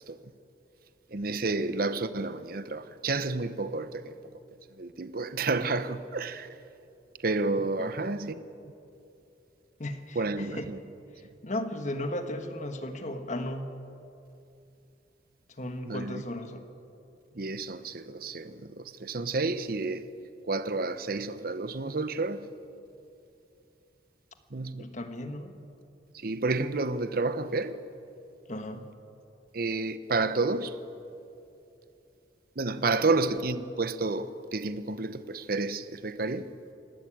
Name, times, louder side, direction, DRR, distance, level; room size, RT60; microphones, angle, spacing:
voice 1, 1.1-4.2 4.8-6.5 7.2-8.4 10.1-10.8 15.8-16.3 17.3-20.1 20.5-22.5 24.5-24.9 26.1-27.8 29.5-30.8 32.6-36.5, right 3 dB, 50° right, 0.9 m, -30 dB
voice 2, 9.8-10.7 11.4-13.6 15.6-16.7 24.8-25.6 28.5-28.8 32.9-33.0, left 1 dB, 40° left, 1.4 m, -35 dB
28.0 x 12.5 x 8.7 m
head